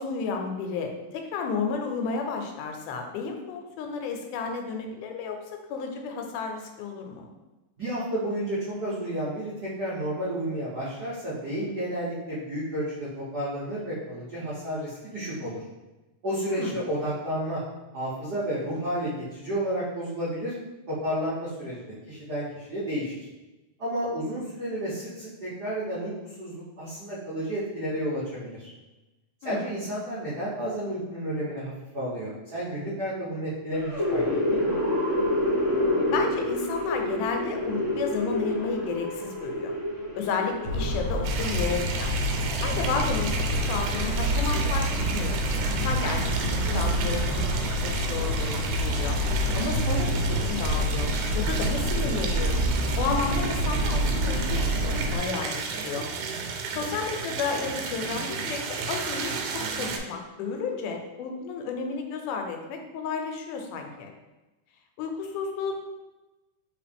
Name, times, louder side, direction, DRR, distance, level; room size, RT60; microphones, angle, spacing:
voice 1, 0.0-5.4 5.7-7.3 16.5-16.8 29.4-29.7 36.1-39.7 40.1-42.1 42.6-45.5 45.8-49.2 49.5-51.1 51.4-52.7 53.0-54.7 54.9-56.1 56.7-64.1 65.0-65.8, left 5 dB, 85° left, 3 dB, 2.1 m, -32 dB
voice 2, 7.8-15.6 16.2-17.6 17.9-20.5 20.9-23.2 23.8-28.7 29.4-34.2 34.5-34.7, equal, 70° right, -12 dB, 0.9 m, -31 dB
sound 1, 33.7-41.0, left 1 dB, 45° left, 0.9 m, -27 dB
Motor vehicle (road) / Siren, 40.7-55.2, equal, 65° left, 1.6 m, -27 dB
sound 2, 41.2-60.0, right 5 dB, 85° right, 2.1 m, -33 dB
4.2 x 3.3 x 3.4 m, 1.1 s
omnidirectional pair, 3.5 m